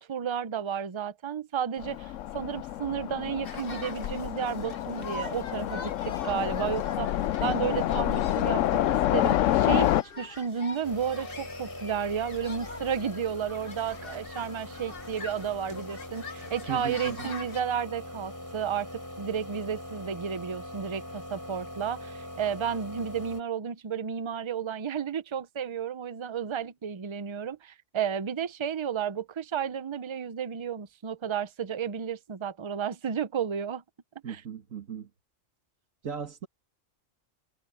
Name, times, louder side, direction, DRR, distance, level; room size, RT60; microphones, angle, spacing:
voice 1, 0.0-33.8 34.3-34.4, right 7 dB, 30° right, 0.5 m, -32 dB
Train, 1.8-10.0, left 12 dB, 75° left, 0.9 m, -28 dB
sound 1, 3.4-17.6, left 4 dB, 45° left, 1.6 m, -44 dB
sound 2, 10.8-23.4, left 1 dB, 15° left, 5.8 m, -42 dB
voice 2, 16.7-17.3 34.2-35.1 36.0-36.5, right 6 dB, 85° right, 2.0 m, -37 dB
omnidirectional pair, 1.3 m